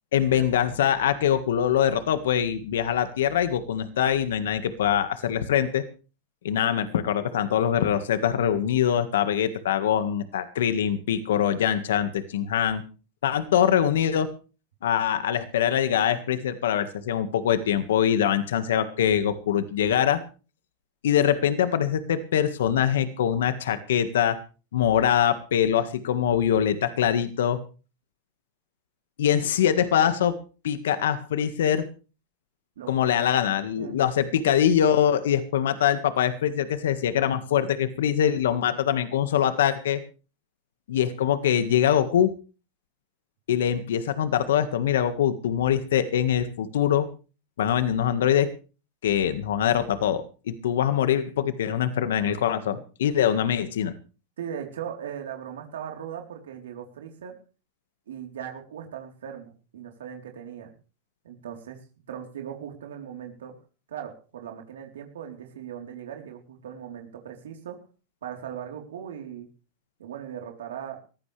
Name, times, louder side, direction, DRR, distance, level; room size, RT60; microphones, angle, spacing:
voice 1, 0.1-5.8 6.4-12.8 13.2-14.3 14.8-20.2 21.0-24.4 24.7-27.6 29.2-30.4 30.6-31.9 32.9-40.0 40.9-42.3 43.5-47.1 47.6-48.5 49.0-53.9, left 9 dB, 85° left, 10 dB, 1.8 m, -23 dB
voice 2, 32.8-33.3 33.8-33.9 54.4-57.3 58.1-60.7 61.2-63.6 63.9-67.8 68.2-69.5 70.0-71.0, right 9 dB, 90° right, 2 dB, 3.9 m, -39 dB
21.5 x 15.5 x 3.4 m, 0.36 s
supercardioid pair, 135°, 0 cm